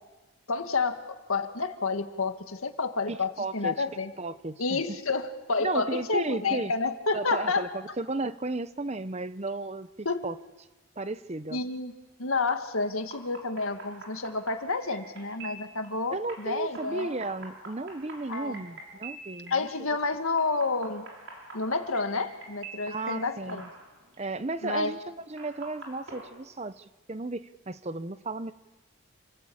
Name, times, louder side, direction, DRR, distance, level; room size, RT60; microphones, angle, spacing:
voice 1, 0.5-1.0 1.3-4.1 4.6-7.7 10.1-10.3 11.5-11.9 12.2-17.1 18.3-18.6 19.5-21.1 21.5-23.7 24.6-24.9, left 3 dB, 75° left, 7 dB, 1.9 m, -29 dB
voice 2, 3.1-3.8 4.2-4.8 5.6-6.7 7.1-9.9 10.2-10.4 11.0-11.6 16.1-19.7 22.8-23.7 24.2-28.5, right 2 dB, 30° right, 13 dB, 0.7 m, -34 dB
sound 1, 13.0-26.2, right 2 dB, 60° right, 6.5 m, -47 dB
28.5 x 17.0 x 8.7 m, 1.1 s
head